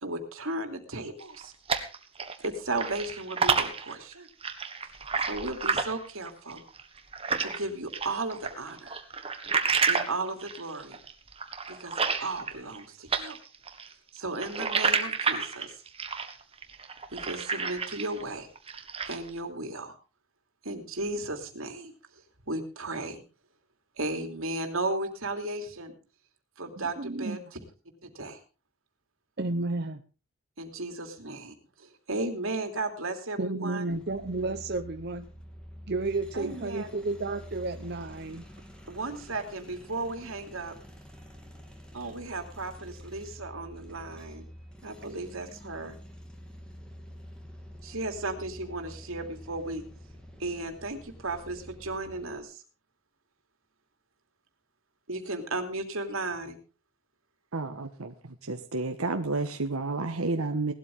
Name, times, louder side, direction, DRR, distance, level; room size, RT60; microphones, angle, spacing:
voice 1, 0.0-1.5 2.4-4.3 5.2-6.6 7.4-9.0 9.9-11.0 11.7-13.4 14.1-15.7 17.1-18.5 19.0-19.9 20.6-21.9 22.5-23.2 24.0-25.9 26.6-27.6 28.0-28.4 30.6-33.9 36.3-36.9 38.9-40.7 41.9-44.5 44.8-46.0 47.8-49.8 50.4-52.6 55.1-56.6, right 2 dB, 75° right, 6 dB, 2.9 m, -35 dB
sound 1, 1.2-2.5 2.7-7.6 7.9-12.8 13.1-18.2 18.6-19.3, right 5 dB, 25° right, 1.5 m, -30 dB
voice 2, 26.8-27.4 29.4-30.0 33.4-35.3 35.9-38.4, right 2 dB, 50° right, 7 dB, 0.8 m, -32 dB
sound 2, 33.9-52.4, equal, 5° left, 2.6 m, -48 dB
voice 3, 57.5-58.1 58.4-60.7, right 3 dB, 90° right, 6 dB, 1.3 m, -30 dB
18.5 x 12.5 x 3.6 m, 0.33 s
head